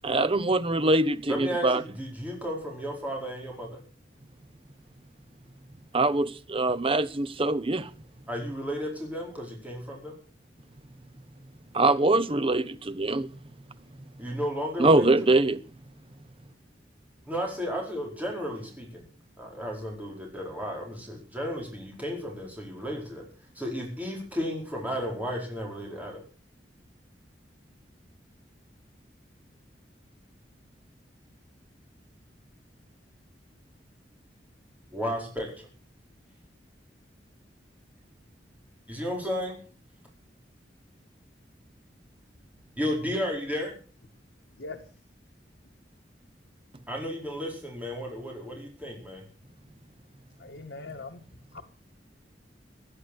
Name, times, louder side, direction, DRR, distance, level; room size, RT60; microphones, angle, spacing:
voice 1, 0.0-1.8 5.9-7.9 11.7-13.3 14.8-15.6, right 2 dB, 30° right, 0.8 m, -23 dB
voice 2, 1.3-3.8 8.3-10.2 14.2-15.4 17.3-19.1 19.4-23.2 23.5-26.2 34.9-35.5 38.9-39.6 42.8-43.7 46.9-49.2, equal, 10° right, 4.8 m, -33 dB
voice 3, 50.4-51.2 51.5-51.6, left 3 dB, 80° left, 1.7 m, -40 dB
16.5 x 10.0 x 6.4 m
head